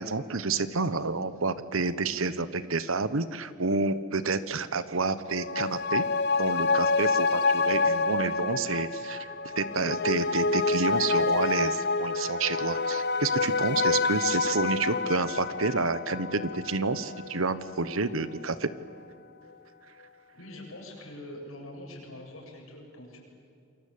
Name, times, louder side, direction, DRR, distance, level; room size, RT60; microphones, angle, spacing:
voice 1, 0.0-6.1 6.4-9.3 9.5-18.7, right 4 dB, 80° right, 13 dB, 1.1 m, -29 dB
sound 1, 5.2-18.1 18.4-18.5, left 4 dB, 50° left, 0.8 m, -28 dB
voice 2, 20.3-23.2, left 1 dB, 80° left, 0 dB, 7.8 m, -44 dB
28.0 x 23.0 x 8.6 m, 2.4 s
head